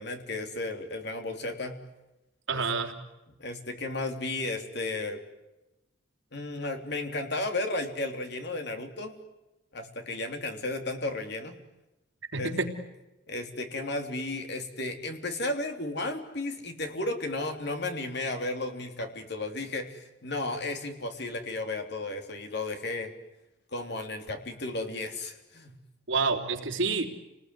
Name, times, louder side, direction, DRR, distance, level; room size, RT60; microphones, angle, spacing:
voice 1, 0.0-1.7 2.5-2.6 3.4-5.2 6.3-9.1 9.7-11.6 12.4-12.5 13.3-23.1 23.7-25.7, left 2 dB, 55° left, 5 dB, 3.4 m, -34 dB
voice 2, 2.5-2.9 12.3-12.7 26.1-27.0, right 4 dB, 75° right, 3 dB, 3.4 m, -28 dB
29.5 x 20.0 x 9.7 m, 0.99 s
head